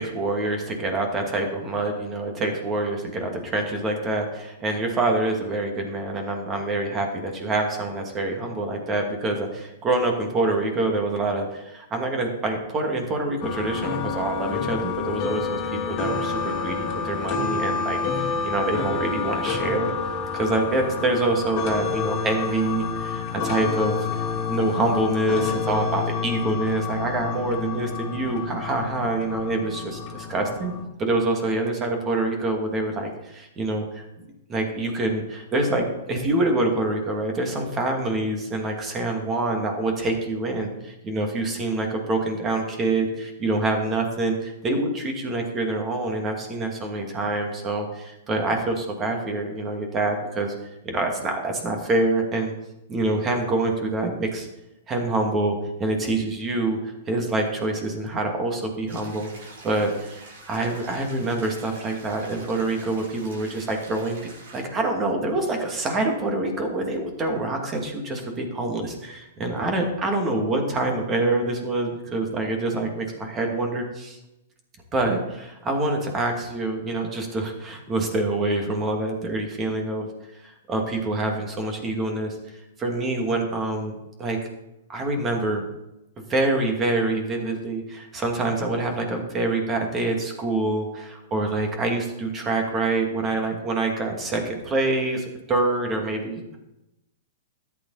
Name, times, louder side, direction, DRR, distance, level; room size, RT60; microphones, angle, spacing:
voice 1, 0.0-19.9 20.3-24.0 24.5-30.7 31.0-34.0 34.5-50.5 50.8-52.5 52.9-54.5 54.9-64.2 64.5-74.2 74.9-80.1 80.4-82.4 82.8-84.4 84.9-85.7 86.3-96.6, right 2 dB, 25° right, 3 dB, 2.4 m, -26 dB
sound 1, 13.4-30.8, left 5 dB, 35° left, 2.3 m, -29 dB
sound 2, 58.9-64.6, right 2 dB, 65° right, 5.3 m, -46 dB
13.0 x 9.2 x 4.2 m, 0.92 s
hypercardioid pair, 130°, 0 cm